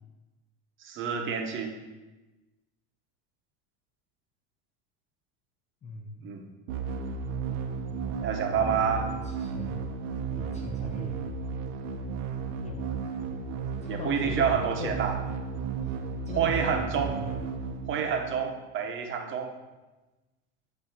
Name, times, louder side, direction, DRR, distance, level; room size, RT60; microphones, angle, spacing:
voice 1, 0.8-1.7 6.2-6.4 8.2-9.1 13.9-15.1 16.4-17.1 17.9-19.5, right 7 dB, 35° right, 4 dB, 0.8 m, -28 dB
voice 2, 5.8-6.3 8.5-9.8 10.3-11.4 12.6-12.9 13.8-15.1 15.8-15.9 16.3-17.4, left 3 dB, 20° left, 1 dB, 0.4 m, -40 dB
sound 1, 6.7-18.6, right 5 dB, 85° right, 0.8 m, -34 dB
8.2 x 2.7 x 5.8 m, 1.1 s
supercardioid pair, 145°, 37 cm